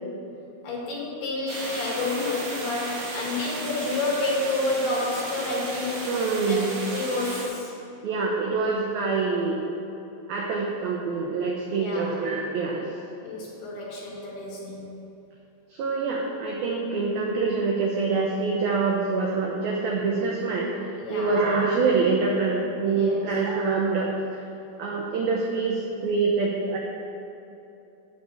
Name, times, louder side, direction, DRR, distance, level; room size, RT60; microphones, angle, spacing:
voice 1, 0.6-7.7 11.7-12.2 13.2-14.9 21.0-21.4 22.9-23.2, left 2 dB, 60° left, -3 dB, 3.5 m, -30 dB
sound 1, 1.5-7.4, right 2 dB, 55° right, 3.9 m, -34 dB
voice 2, 6.0-6.8 8.0-9.6 10.3-12.8 15.7-20.7 21.1-24.1 24.8-26.8, right 4 dB, 85° right, -1 dB, 2.1 m, -25 dB
14.5 x 5.5 x 7.9 m, 2.9 s
omnidirectional pair, 5.7 m